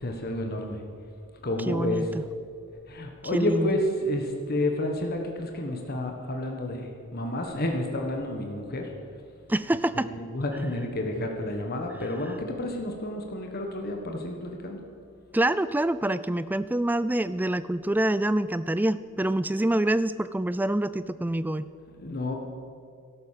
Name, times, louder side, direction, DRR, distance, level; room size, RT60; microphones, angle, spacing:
voice 1, 0.0-0.8 1.4-2.1 2.9-8.9 10.0-14.8 22.0-22.3, left 1 dB, 45° left, 3 dB, 1.4 m, -30 dB
voice 2, 1.7-2.2 3.3-3.8 9.5-10.1 15.3-21.7, right 1 dB, 10° right, 14 dB, 0.3 m, -26 dB
13.0 x 11.5 x 7.5 m, 2.3 s
head